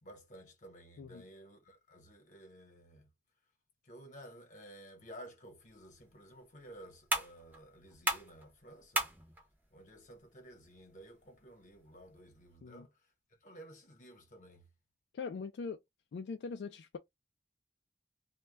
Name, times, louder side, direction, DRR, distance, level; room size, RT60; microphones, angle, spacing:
voice 1, 0.0-3.1 3.8-9.1 9.7-14.7, right 1 dB, 45° left, 0.9 m, -54 dB
sound 1, 5.6-12.6, right 1 dB, 10° right, 0.6 m, -41 dB
voice 2, 15.1-15.8 16.1-17.0, left 5 dB, 70° left, 0.3 m, -41 dB
2.2 x 2.1 x 3.3 m
head